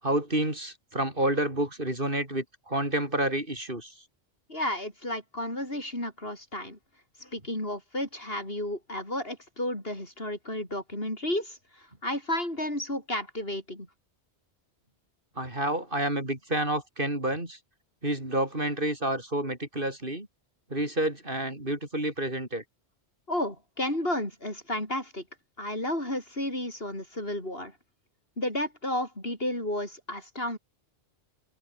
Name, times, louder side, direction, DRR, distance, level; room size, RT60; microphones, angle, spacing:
voice 1, 0.0-4.0 15.4-17.6 18.0-20.3 20.7-22.6, right 1 dB, 50° right, 5.9 m, -29 dB
voice 2, 4.5-6.8 7.2-13.9 23.3-25.2 25.6-27.7 28.4-30.6, left 1 dB, 60° left, 8.4 m, -32 dB
omnidirectional pair, 1.1 m